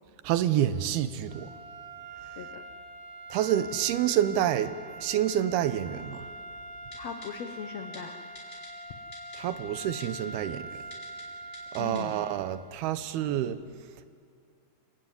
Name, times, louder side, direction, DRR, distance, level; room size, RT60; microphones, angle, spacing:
voice 1, 0.2-1.5 3.3-4.7 5.0-6.3 9.4-10.7 11.7-13.6, right 11 dB, 80° right, 12 dB, 2.7 m, -28 dB
sound 1, 1.2-12.7, right 1 dB, 25° right, 3.4 m, -43 dB
voice 2, 6.9-8.2 11.8-12.3 13.2-13.4, left 6 dB, 90° left, 7 dB, 1.4 m, -39 dB
Typing, 6.9-7.3 7.9-8.0 8.3-8.7 9.1-9.4 10.0-10.1 10.9-11.2 11.5-12.0 12.4-12.5, left 1 dB, 15° left, 5.0 m, -46 dB
27.5 x 17.0 x 9.5 m, 2.3 s
omnidirectional pair, 4.6 m